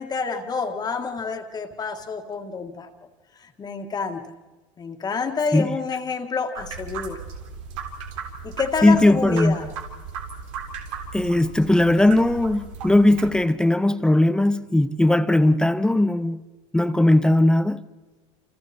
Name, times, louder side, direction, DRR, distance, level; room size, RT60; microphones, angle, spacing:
voice 1, 0.0-2.9 3.4-4.3 4.8-7.2 8.4-9.7, left 5 dB, 25° left, 1.9 m, -28 dB
sound 1, 6.5-13.3, right 6 dB, 85° right, 3.8 m, -36 dB
voice 2, 8.8-9.6 11.1-16.4 16.7-17.8, left 1 dB, 5° left, 0.8 m, -18 dB
28.5 x 28.0 x 4.4 m
supercardioid pair, 120°, 16 cm